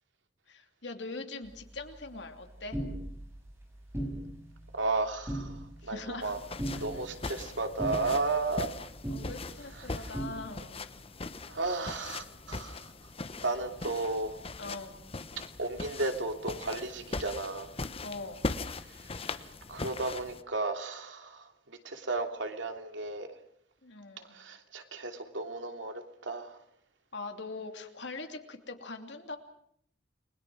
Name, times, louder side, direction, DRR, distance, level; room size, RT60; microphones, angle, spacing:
voice 1, 0.5-2.8 5.8-6.3 6.7-6.9 9.1-10.9 14.6-15.0 18.0-18.5 23.8-24.3 27.1-29.4, left 3 dB, 70° left, 5 dB, 2.9 m, -42 dB
sound 1, 1.4-10.3, right 1 dB, 15° right, 6.0 m, -40 dB
voice 2, 4.7-6.4 6.8-8.7 11.5-12.9 13.4-14.4 15.6-17.7 19.0-23.3 24.3-26.6, right 3 dB, 85° right, 5 dB, 2.9 m, -34 dB
sound 2, 6.2-20.4, left 3 dB, 30° left, 1.0 m, -40 dB
29.5 x 21.5 x 6.2 m, 0.66 s
head